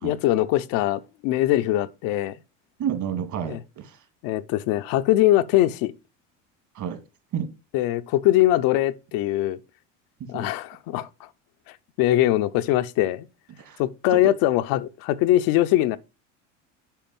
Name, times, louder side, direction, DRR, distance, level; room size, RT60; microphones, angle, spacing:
voice 1, 0.0-2.4 3.4-3.6 4.2-5.9 7.7-9.6 10.3-11.3 12.0-13.3 13.8-16.0, left 14 dB, 65° left, 0.8 m, -22 dB
voice 2, 2.8-4.0 6.8-7.0 7.3-7.5 10.3-10.5 13.6-13.8 14.1-14.2, right 8 dB, 50° right, 2.3 m, -30 dB
9.2 x 5.2 x 5.4 m
hypercardioid pair, 85°, 37 cm